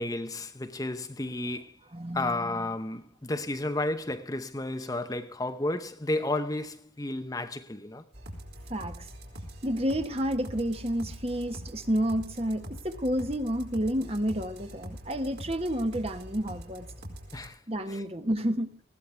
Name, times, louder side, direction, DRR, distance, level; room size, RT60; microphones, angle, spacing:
voice 1, 0.0-1.8 2.1-8.0 17.3-17.6 17.9-18.0, left 2 dB, 20° left, 0.8 m, -32 dB
voice 2, 1.9-2.3 8.7-9.1 9.6-16.9 17.7-18.7, equal, 30° right, 1.3 m, -30 dB
sound 1, 8.1-17.5, equal, 55° right, 4.2 m, -44 dB
20.0 x 16.0 x 3.4 m
head